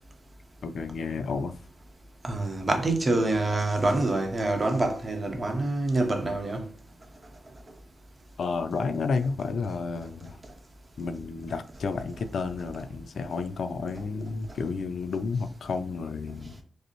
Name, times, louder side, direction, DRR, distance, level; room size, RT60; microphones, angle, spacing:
voice 1, 0.6-1.6 8.4-10.4 11.0-16.6, left 4 dB, 70° left, 0.3 m, -31 dB
voice 2, 2.2-6.6, right 2 dB, 25° right, 0.8 m, -26 dB
5.0 x 2.0 x 3.0 m
wide cardioid pair, 110°, 0 cm